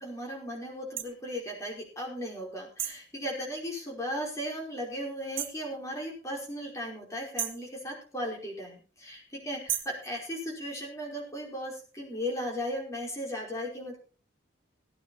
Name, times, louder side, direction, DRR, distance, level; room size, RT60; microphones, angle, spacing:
voice 1, 0.0-14.0, equal, 15° left, -2 dB, 5.1 m, -36 dB
sound 1, 1.0-1.1 2.8-3.1 5.4-5.6 7.4-7.7 9.7-10.0, right 11 dB, 85° right, 1.7 m, -33 dB
17.5 x 9.5 x 4.2 m, 0.37 s
head